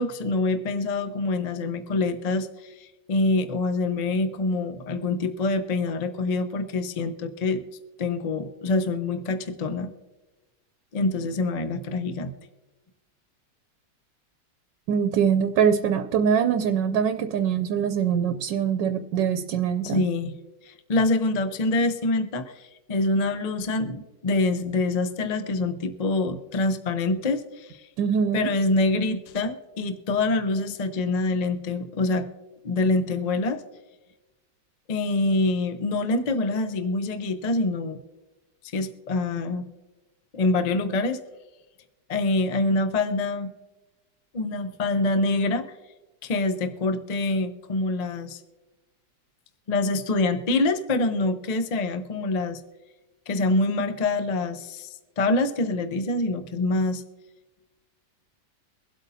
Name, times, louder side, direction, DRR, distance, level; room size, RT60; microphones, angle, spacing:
voice 1, 0.0-7.6 8.0-9.9 10.9-12.3 19.8-20.4 20.7-22.6 22.9-27.8 28.3-32.3 32.6-33.6 34.9-38.0 38.7-39.6 40.3-41.2 42.1-43.5 44.3-45.6 46.2-48.4 49.7-52.6 53.3-54.9 55.2-57.0, left 2 dB, 45° left, 9 dB, 0.5 m, -25 dB
voice 2, 14.9-20.0 28.0-28.5, right 7 dB, 90° right, 8 dB, 1.3 m, -23 dB
23.5 x 8.2 x 2.7 m, 1.1 s
omnidirectional pair, 1.9 m